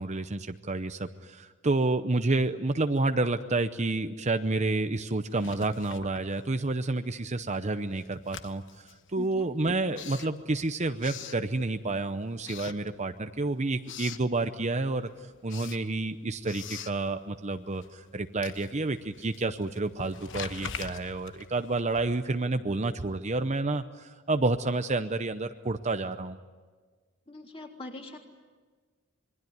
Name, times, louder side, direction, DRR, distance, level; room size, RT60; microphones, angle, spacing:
voice 1, 0.0-8.8 9.1-15.1 15.4-26.4, right 2 dB, 30° right, 9 dB, 0.7 m, -29 dB
Writing, 5.3-6.9 7.2-12.0 12.4-13.4 13.6-14.3 14.7-22.4, left 7 dB, 55° left, 1.2 m, -44 dB
voice 2, 9.1-9.5 27.3-28.2, left 2 dB, 25° left, 1 dB, 3.4 m, -42 dB
27.0 x 22.5 x 9.5 m, 1.4 s
head